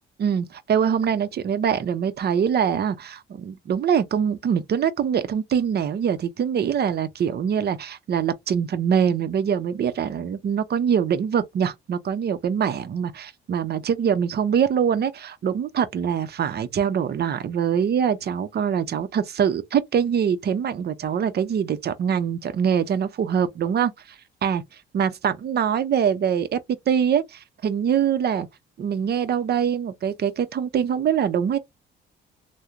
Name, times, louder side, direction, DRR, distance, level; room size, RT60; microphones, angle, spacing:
voice 1, 0.2-23.9 24.4-24.6 24.9-26.6 26.9-28.5 28.8-31.6, right 8 dB, 55° right, 0.8 m, -23 dB
3.6 x 2.2 x 2.8 m
cardioid pair, 90°, 20 cm